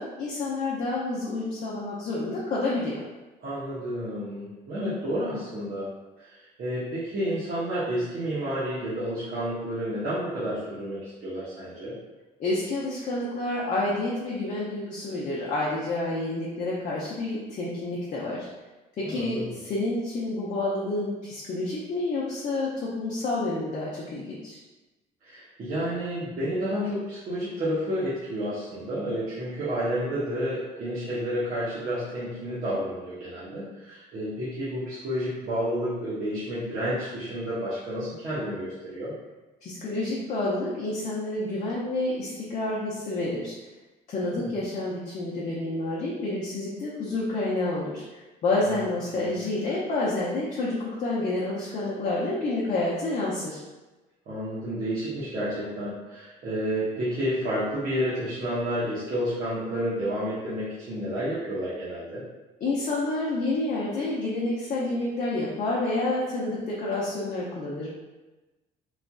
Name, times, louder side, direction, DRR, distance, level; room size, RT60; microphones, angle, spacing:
voice 1, 0.0-3.0 12.4-18.5 19.0-24.6 39.6-43.5 44.1-48.0 48.4-53.6 62.6-68.0, left 2 dB, 45° left, -5 dB, 0.6 m, -29 dB
voice 2, 3.4-5.9 6.2-12.0 19.0-19.5 25.2-39.1 44.3-44.6 48.7-48.8 49.1-49.4 54.3-62.2, equal, 55° right, -10 dB, 0.9 m, -30 dB
3.1 x 2.5 x 2.2 m, 1.1 s
cardioid pair, 110°, 17 cm